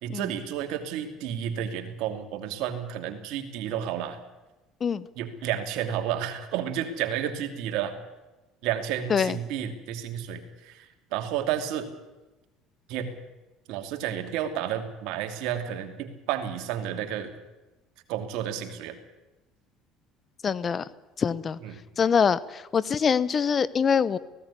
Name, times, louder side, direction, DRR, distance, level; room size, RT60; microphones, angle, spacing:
voice 1, 0.0-4.2 5.2-7.9 8.6-11.9 12.9-13.1 13.7-17.3 18.1-19.0 21.6-21.8, right 10 dB, 70° right, 6 dB, 2.7 m, -31 dB
voice 2, 20.4-20.9 21.2-21.6 22.0-24.2, left 6 dB, 35° left, 19 dB, 1.0 m, -24 dB
18.0 x 16.0 x 9.9 m, 1.1 s
supercardioid pair, 105°, 0 cm